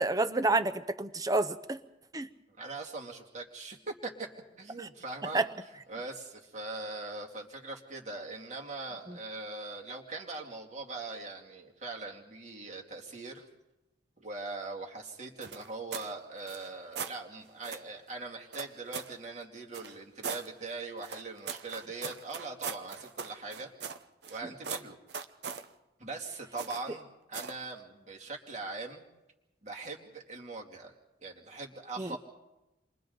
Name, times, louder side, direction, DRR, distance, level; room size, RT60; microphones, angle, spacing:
voice 1, 0.0-1.8 2.1-2.3 4.8-4.9 5.3-5.5 9.1-9.2 32.0-32.2, right 2 dB, 20° right, 11 dB, 0.7 m, -29 dB
voice 2, 2.6-4.3 4.6-5.4 5.9-13.4 14.2-23.7 24.3-25.0 26.0-29.0 29.6-30.9 31.2-32.2, right 3 dB, 40° right, 0 dB, 2.5 m, -41 dB
sound 1, 15.4-16.1 16.4-17.2 17.6-17.9 18.5-19.2 19.7-20.5 21.0-24.4 24.6-25.7 26.6-26.9 27.3-27.6, right 6 dB, 65° right, 0.9 m, -40 dB
29.0 x 23.5 x 4.0 m, 1.0 s
head